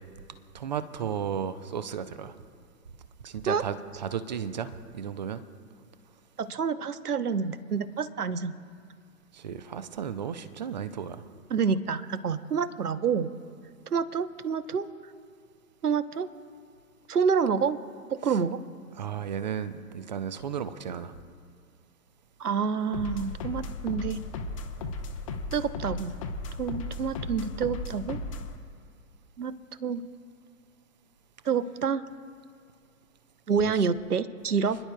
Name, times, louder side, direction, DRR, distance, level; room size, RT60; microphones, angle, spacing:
voice 1, 0.5-2.3 3.2-5.4 9.3-11.2 19.0-21.1, right 8 dB, 30° right, 13 dB, 0.5 m, -34 dB
voice 2, 6.4-8.5 11.5-13.4 13.9-14.9 15.8-16.3 17.1-17.8 18.1-18.6 22.4-24.2 25.5-26.2 26.6-28.2 29.4-30.0 31.4-32.0 33.5-34.8, right 6 dB, 70° right, 14 dB, 0.9 m, -28 dB
sound 1, 22.9-28.6, left 3 dB, 20° left, 0.6 m, -36 dB
30.0 x 11.0 x 2.3 m, 2.1 s
figure-of-eight pair, 120°, 47 cm